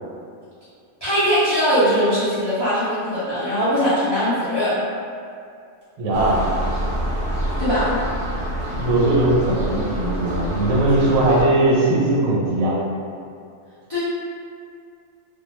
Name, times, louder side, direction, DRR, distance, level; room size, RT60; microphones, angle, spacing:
voice 1, 1.0-4.8 7.6-8.0 13.9-14.0, equal, 35° left, -14 dB, 0.4 m, -20 dB
voice 2, 6.0-6.4 8.8-12.7, right 2 dB, 90° right, -5 dB, 1.1 m, -19 dB
sound 1, 6.1-11.4, right 1 dB, 50° right, 0.6 m, -26 dB
2.3 x 2.2 x 3.0 m, 2.4 s
omnidirectional pair, 1.4 m